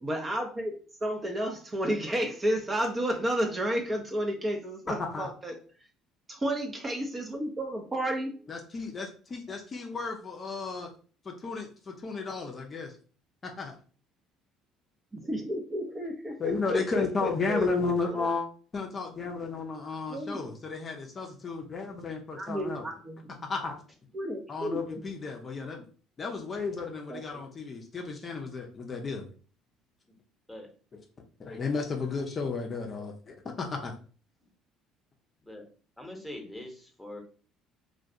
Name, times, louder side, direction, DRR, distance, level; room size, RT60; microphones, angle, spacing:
voice 1, 0.0-5.6 6.3-8.5 15.1-17.7 18.1-18.2 20.1-20.5 22.3-23.3 24.1-25.0 27.1-27.2, equal, 25° right, 3 dB, 0.5 m, -32 dB
voice 2, 5.0-5.3 8.5-10.9 11.2-13.0 13.4-13.7 16.4-18.5 18.7-22.8 23.5-23.7 24.5-25.9 26.2-29.2 31.4-33.9, left 4 dB, 35° left, 2 dB, 0.5 m, -33 dB
voice 3, 36.0-37.2, left 1 dB, 5° left, 2 dB, 0.9 m, -43 dB
2.2 x 2.2 x 2.7 m, 0.40 s
hypercardioid pair, 55°, 0 cm